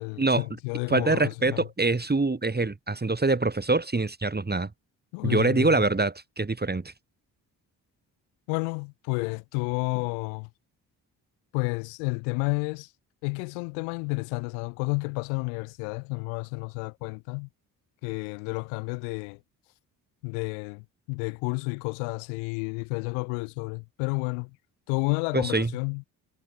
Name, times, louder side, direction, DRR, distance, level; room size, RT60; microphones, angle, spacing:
voice 1, 0.0-1.6 5.1-5.8 8.5-10.5 11.5-12.9 13.2-17.5 18.0-19.4 20.2-24.6 24.9-26.0, left 40 dB or more, 80° left, 8.0 m, -31 dB
voice 2, 0.9-4.7 5.2-6.9 25.3-25.7, right 3 dB, 20° right, 2.1 m, -25 dB
hypercardioid pair, 45°, 49 cm